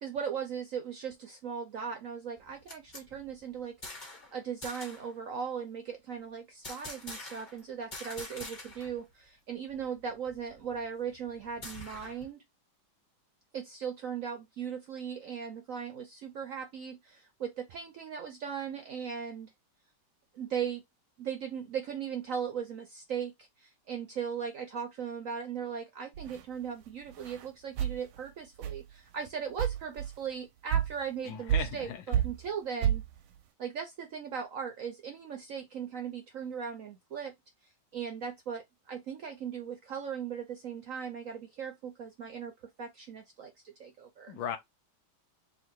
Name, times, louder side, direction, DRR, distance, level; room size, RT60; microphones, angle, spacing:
voice 1, 0.0-3.7 4.3-12.4 13.5-19.5 20.3-20.8 21.2-33.0 33.6-37.3 37.9-42.5 42.8-44.4, right 7 dB, 70° right, 0.8 m, -38 dB
sound 1, 2.4-4.3 4.6-5.1 6.6-7.6 7.9-9.0 9.3-9.4 9.7-12.3, left 2 dB, 25° left, 1.2 m, -45 dB
sound 2, 26.2-26.4 27.1-27.4 27.8-28.0 28.6-28.8 29.3-29.4 29.6-30.1 30.7-30.9 31.5-31.9 32.1-32.5 32.8-33.1, right 10 dB, 85° right, 1.4 m, -29 dB
voice 2, 31.3-32.0 44.3-44.6, left 8 dB, 75° left, 1.5 m, -37 dB
3.9 x 2.5 x 4.4 m
omnidirectional pair, 2.2 m